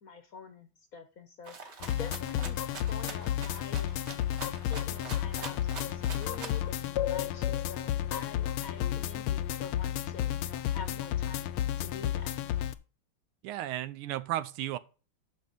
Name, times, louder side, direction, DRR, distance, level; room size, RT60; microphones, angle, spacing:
voice 1, 0.0-4.1 4.6-11.5 11.8-12.4, left 5 dB, 55° left, 1.1 m, -46 dB
Rattle (instrument), 1.4-6.7, right 4 dB, 40° right, 1.1 m, -44 dB
sound 1, 1.8-12.7, left 11 dB, 85° left, 1.5 m, -32 dB
voice 2, 13.4-14.8, right 13 dB, 85° right, 1.6 m, -34 dB
9.7 x 6.3 x 3.9 m
omnidirectional pair, 2.4 m